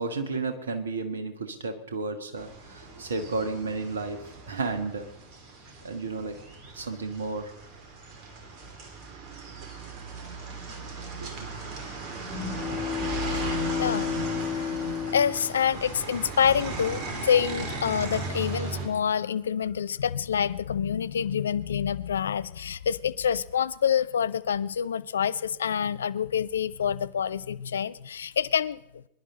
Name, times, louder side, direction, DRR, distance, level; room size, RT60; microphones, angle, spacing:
voice 1, 0.0-5.1 5.8-6.4 6.7-7.6 11.2-11.7, right 3 dB, 70° right, 8 dB, 1.5 m, -33 dB
sound 1, 2.4-18.9, right 3 dB, 40° right, 2.5 m, -37 dB
sound 2, 12.2-16.2, left 7 dB, 35° left, 2.3 m, -32 dB
voice 2, 15.1-29.1, left 8 dB, 65° left, 17 dB, 0.4 m, -27 dB
23.5 x 11.0 x 3.9 m, 0.81 s
figure-of-eight pair, 90°, 0 cm